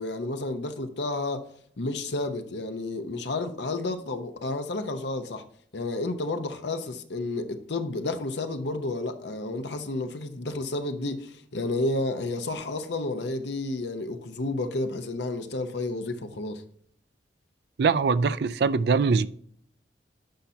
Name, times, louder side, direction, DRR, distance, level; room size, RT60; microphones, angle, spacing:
voice 1, 0.0-1.5 1.8-5.4 5.7-16.6, left 2 dB, 70° left, 0.8 m, -31 dB
voice 2, 17.8-19.3, right 5 dB, 65° right, 0.4 m, -22 dB
10.5 x 5.6 x 2.7 m
head